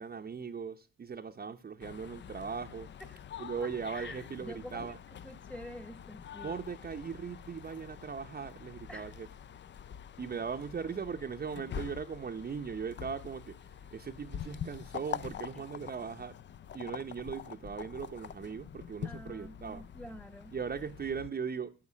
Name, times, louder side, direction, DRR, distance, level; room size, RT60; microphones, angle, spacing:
voice 1, 0.0-2.9 3.4-5.0 6.4-9.3 10.2-16.4 16.7-19.8 20.5-21.7, right 6 dB, 30° right, 0.7 m, -39 dB
sound 1, 1.8-21.3, left 9 dB, 40° left, 0.4 m, -45 dB
voice 2, 3.6-4.9 5.2-6.6 8.9-9.2 18.2-18.3 19.0-20.5, equal, 5° left, 1.1 m, -47 dB
9.7 x 7.2 x 6.0 m
cardioid pair, 90°, 30 cm